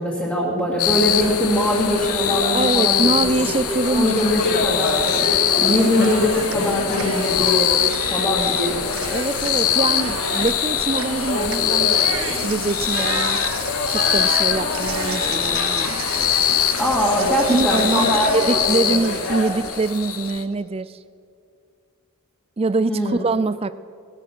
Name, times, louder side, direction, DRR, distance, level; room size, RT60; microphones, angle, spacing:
voice 1, 0.0-5.1 5.6-7.8 8.1-8.8 16.8-19.0 22.9-23.2, left 1 dB, 5° left, -5 dB, 2.0 m, -22 dB
sound 1, 0.8-20.4, left 10 dB, 85° left, 0.9 m, -23 dB
sound 2, 1.1-19.6, left 1 dB, 50° left, 2.9 m, -29 dB
voice 2, 2.5-4.3 5.7-5.9 9.1-13.4 13.9-16.0 17.5-21.0 22.6-23.7, right 3 dB, 25° right, 16 dB, 0.4 m, -24 dB
Cheering, 4.8-5.7 6.0-20.3, right 7 dB, 70° right, 0.7 m, -33 dB
19.0 x 11.5 x 6.2 m, 2.4 s
head